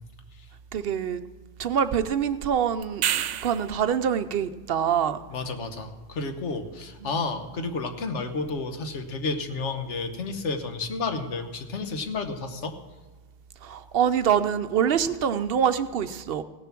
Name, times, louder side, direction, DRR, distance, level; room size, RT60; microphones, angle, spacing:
voice 1, 0.7-1.2 1.6-5.2 7.0-7.1 13.6-16.4, right 8 dB, 60° right, 11 dB, 0.7 m, -25 dB
sound 1, 2.8-3.8 8.5-8.6, right 11 dB, 90° right, 0.9 m, -28 dB
voice 2, 5.3-12.7, left 3 dB, 80° left, 7 dB, 1.4 m, -31 dB
16.5 x 7.0 x 5.9 m, 1.4 s
omnidirectional pair, 1.2 m